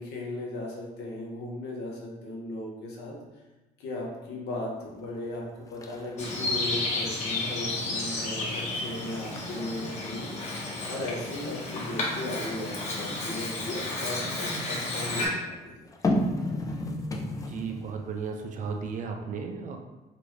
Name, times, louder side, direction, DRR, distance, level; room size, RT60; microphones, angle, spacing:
voice 1, 0.0-3.2 3.8-10.3 10.9-15.9, left 1 dB, 80° left, -2 dB, 1.0 m, -37 dB
sound 1, 5.0-5.4 5.7-7.4 7.8-8.2 8.7-8.8 9.2-11.1 12.7-14.5 15.8-18.1 18.4-18.5, left 1 dB, 20° left, 0.4 m, -33 dB
Bird vocalization bird call bird song, 6.2-15.3, left 2 dB, 45° left, 1.0 m, -32 dB
voice 2, 17.5-19.8, right 5 dB, 50° right, 3 dB, 0.5 m, -34 dB
3.9 x 2.3 x 3.1 m, 1.1 s
cardioid pair, 110°, 17 cm